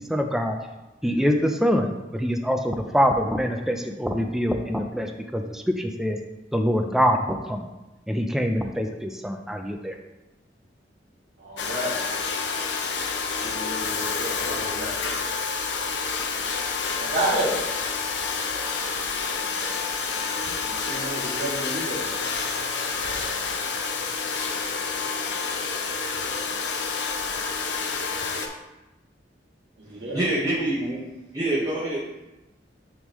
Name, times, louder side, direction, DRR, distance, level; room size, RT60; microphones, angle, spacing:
voice 1, 0.1-0.6 1.0-6.2 6.5-7.7 8.1-9.9, equal, ahead, 4 dB, 0.5 m, -24 dB
voice 2, 11.4-11.9 13.4-15.1 17.0-17.6 20.7-22.2 29.8-30.2, right 1 dB, 70° right, -8 dB, 2.3 m, -30 dB
Domestic sounds home sounds, 11.6-28.5, left 5 dB, 90° left, 0.7 m, -28 dB
voice 3, 29.8-32.3, right 1 dB, 20° right, -7 dB, 1.2 m, -27 dB
9.7 x 3.6 x 3.1 m, 1.0 s
head